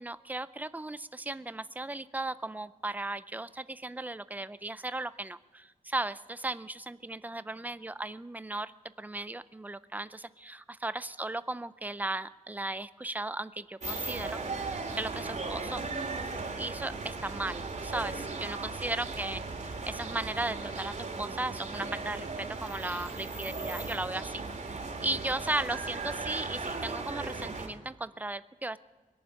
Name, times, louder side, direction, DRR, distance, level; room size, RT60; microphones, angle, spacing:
voice 1, 0.0-8.7 9.0-15.8 16.6-28.8, right 2 dB, 10° right, 15 dB, 0.4 m, -36 dB
sound 1, 13.8-27.7, right 3 dB, 55° right, 2.3 m, -37 dB
21.0 x 7.1 x 9.4 m, 1.2 s
wide cardioid pair, 145°, 14 cm